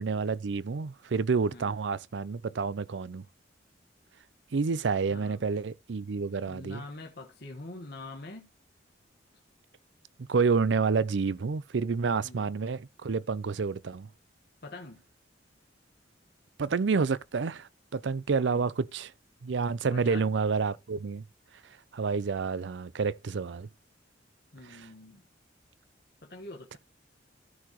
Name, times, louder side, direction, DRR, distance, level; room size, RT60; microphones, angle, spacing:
voice 1, 0.0-3.2 4.5-6.8 10.3-14.1 16.6-19.1 19.4-21.2 21.9-23.7 24.7-24.8, right 5 dB, 75° right, 0.5 m, -29 dB
voice 2, 5.1-5.4 6.5-8.5 12.2-12.5 14.6-15.0 18.4-18.7 19.8-20.3 24.5-25.3 26.2-26.8, left 2 dB, 60° left, 1.3 m, -44 dB
14.0 x 4.8 x 3.0 m
head